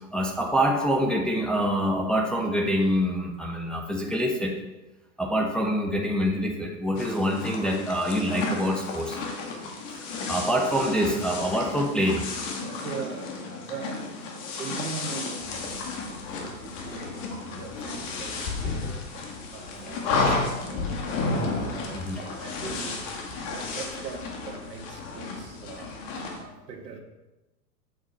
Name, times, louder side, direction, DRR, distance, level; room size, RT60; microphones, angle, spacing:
voice 1, 0.1-4.5 5.2-9.2 10.0-12.2 21.9-22.2, equal, ahead, 0 dB, 0.8 m, -25 dB
sound 1, 7.0-26.4, left 3 dB, 50° left, 1.9 m, -32 dB
voice 2, 12.6-14.1 14.6-15.6 16.3-23.1 23.5-27.0, right 5 dB, 70° right, 2 dB, 1.9 m, -41 dB
7.9 x 7.4 x 4.2 m, 1.0 s
hypercardioid pair, 110°, 50 cm